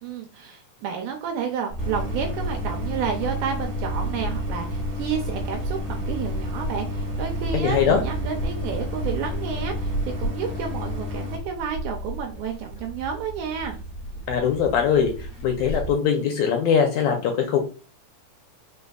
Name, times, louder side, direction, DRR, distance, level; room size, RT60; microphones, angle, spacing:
voice 1, 0.0-9.9 10.2-13.8, right 7 dB, 80° right, 2 dB, 1.9 m, -31 dB
sound 1, 1.7-15.9, right 1 dB, 40° left, 1.3 m, -32 dB
Idling, 1.8-11.4, left 3 dB, 50° right, 1.6 m, -34 dB
voice 2, 7.5-8.0 14.3-15.1 15.4-17.6, left 7 dB, 80° left, 4 dB, 1.7 m, -21 dB
4.3 x 3.9 x 2.3 m, 0.37 s
omnidirectional pair, 3.8 m